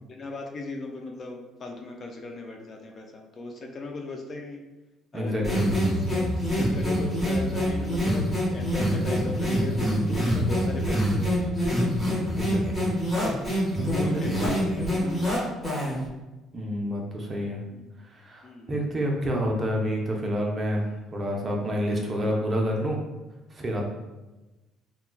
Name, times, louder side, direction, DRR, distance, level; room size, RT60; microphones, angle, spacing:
voice 1, 0.0-4.6 5.1-11.6 13.7-15.3 17.7-17.8 18.4-18.7, left 2 dB, 35° left, 2 dB, 0.3 m, -37 dB
voice 2, 5.1-5.6 12.3-12.9 14.0-14.2 16.5-17.6 18.1-20.8 21.1-23.0 23.5-23.8, equal, 25° right, 0 dB, 0.5 m, -28 dB
sound 1, 5.4-16.1, equal, ahead, 1.1 m, -25 dB
3.7 x 2.2 x 2.2 m, 1.1 s
cardioid pair, 125°, 0 cm